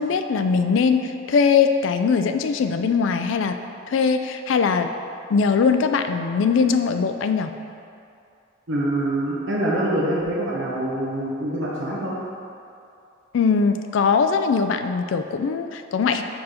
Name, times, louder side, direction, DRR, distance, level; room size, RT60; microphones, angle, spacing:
voice 1, 0.0-3.6 3.9-4.9 5.3-7.5 13.3-16.2, left 5 dB, 70° left, 8 dB, 0.3 m, -21 dB
voice 2, 8.7-12.2, right 1 dB, 70° right, -6 dB, 1.0 m, -25 dB
4.6 x 4.2 x 5.0 m, 2.5 s
head